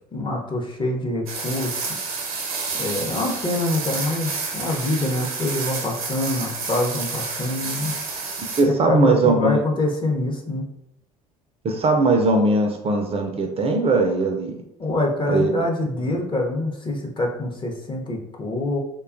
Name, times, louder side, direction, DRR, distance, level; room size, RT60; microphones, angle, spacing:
voice 1, 0.1-1.8 2.8-7.9 8.6-10.7 14.8-18.8, left 1 dB, 25° left, 0 dB, 0.7 m, -25 dB
plastic bag rain white noise, 1.3-8.6, right 4 dB, 80° right, 0.6 m, -30 dB
voice 2, 8.6-9.6 11.6-14.6 15.3-15.5, right 2 dB, 35° right, 3 dB, 0.4 m, -19 dB
2.7 x 2.2 x 2.5 m, 0.79 s
hypercardioid pair, 65°, 18 cm